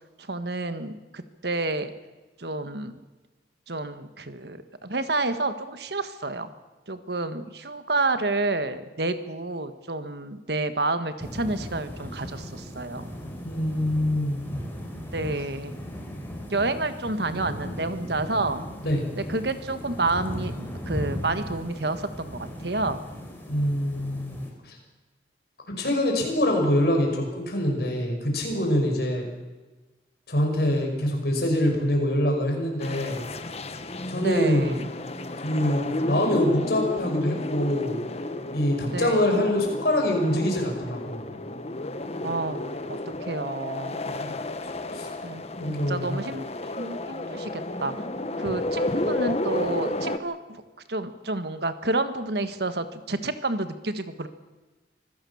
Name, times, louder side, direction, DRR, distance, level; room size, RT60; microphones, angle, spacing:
voice 1, 0.2-1.9 2.4-2.9 3.7-6.5 6.9-13.1 15.0-15.7 16.5-18.7 19.2-23.0 34.2-34.9 38.9-39.4 42.2-42.6 42.9-44.0 45.2-45.4 45.7-46.5 46.8-47.9 48.4-50.6 50.9-54.3, right 2 dB, 60° right, 10 dB, 1.6 m, -29 dB
sound 1, 11.2-24.5, equal, 10° left, 4.1 m, -37 dB
voice 2, 13.4-14.6 18.8-19.0 23.5-24.8 25.8-29.3 30.3-33.2 34.1-34.8 35.4-38.0 38.5-41.2 44.0-44.4 44.9-45.1 45.5-46.2 48.4-48.5, left 1 dB, 60° left, 2 dB, 5.9 m, -25 dB
sound 2, 32.8-50.2, left 1 dB, 35° left, 1.3 m, -32 dB
25.0 x 16.0 x 7.2 m, 1.2 s
head